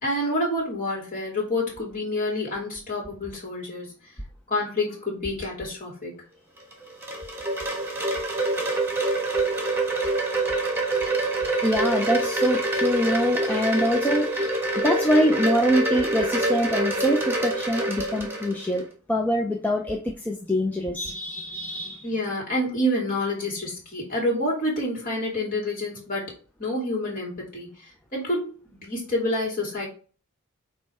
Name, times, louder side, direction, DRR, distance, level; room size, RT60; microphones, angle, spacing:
voice 1, 0.0-3.9 4.5-6.2 22.0-26.3 26.6-27.7 28.1-29.9, left 1 dB, 35° left, -3 dB, 2.8 m, -28 dB
Wind chime, 6.6-18.8, right 2 dB, 10° right, 1.5 m, -26 dB
voice 2, 11.6-22.1, equal, 5° left, 0 dB, 0.6 m, -24 dB
8.6 x 3.2 x 3.6 m, 0.39 s
head